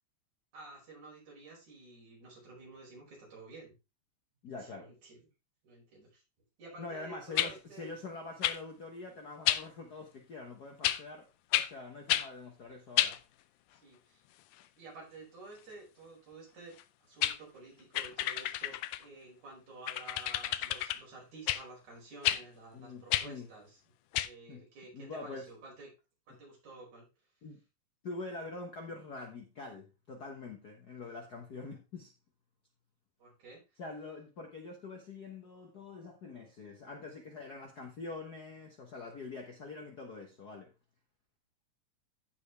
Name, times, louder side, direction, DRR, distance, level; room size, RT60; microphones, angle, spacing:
voice 1, 0.5-3.7 4.6-5.3 5.6-6.2 6.6-7.9 13.7-14.2 14.8-23.8 24.1-25.9 26.3-27.1 33.2-33.6, right 2 dB, 70° right, 6.5 m, -51 dB
voice 2, 4.4-4.9 6.8-11.3 11.5-13.2 22.7-23.5 24.5-24.6 24.9-25.5 26.3-26.4 27.4-27.6 28.0-32.1 33.8-40.7, left 3 dB, 55° left, 1.1 m, -45 dB
sound 1, 7.4-7.5 8.4-8.6 9.5-9.6 10.8-11.0 11.5-11.7 12.1-12.3 13.0-13.2 16.8-16.9 17.2-17.4 17.9-19.0 19.9-21.0 21.5-21.6 22.2-22.4 23.1-23.3 24.1-24.3, left 13 dB, 85° left, 2.1 m, -30 dB
15.0 x 5.1 x 3.4 m
omnidirectional pair, 3.4 m